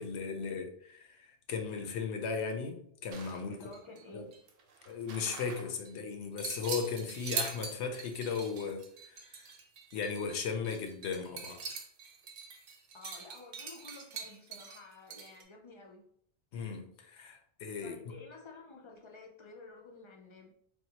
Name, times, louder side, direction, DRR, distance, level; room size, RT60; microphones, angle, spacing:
voice 1, 0.0-3.6 4.1-4.3 4.9-9.4 9.9-11.6 16.5-18.1, left 5 dB, 80° left, 5 dB, 0.9 m, -37 dB
sound 1, 3.1-4.0 4.3-5.9 6.4-15.4, right 5 dB, 65° right, 0.7 m, -43 dB
voice 2, 3.5-4.3 12.9-16.0 17.8-20.5, left 3 dB, 45° left, 0 dB, 0.4 m, -51 dB
3.6 x 2.4 x 2.8 m, 0.66 s
omnidirectional pair, 1.1 m